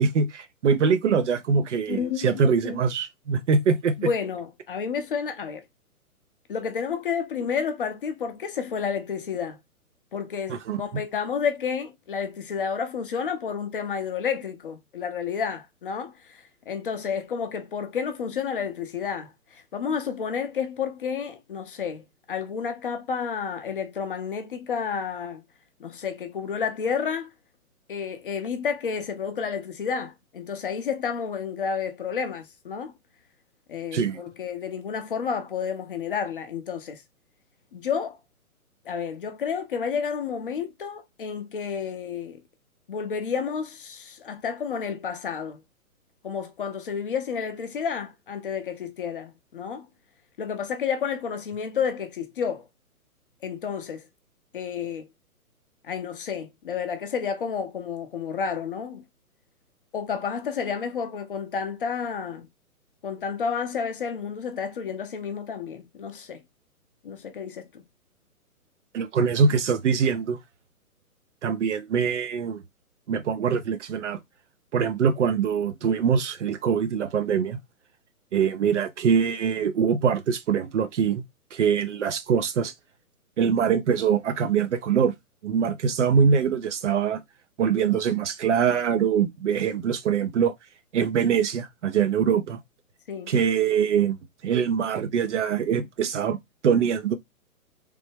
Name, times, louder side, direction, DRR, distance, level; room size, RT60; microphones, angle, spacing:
voice 1, 0.0-4.1 10.5-10.8 33.9-34.2 68.9-70.4 71.4-72.6 73.1-74.2 74.7-77.6 78.3-81.2 81.5-82.7 83.4-85.1 85.4-87.2 87.6-90.5 90.9-92.6 93.3-94.2 94.4-96.4 96.6-97.2, right 6 dB, 55° right, 0.5 m, -23 dB
voice 2, 1.9-2.3 2.6-2.8 4.0-5.6 6.5-9.6 10.1-25.4 25.8-27.3 27.9-32.9 33.7-37.0 37.7-38.2 38.9-42.4 42.9-45.6 46.2-49.9 50.4-52.7 53.4-54.1 54.5-55.1 55.8-59.0 59.9-62.5 63.0-66.4 67.0-67.8 93.1-93.3, left 6 dB, 40° left, 0.5 m, -30 dB
3.2 x 2.1 x 3.0 m
hypercardioid pair, 135°, 45 cm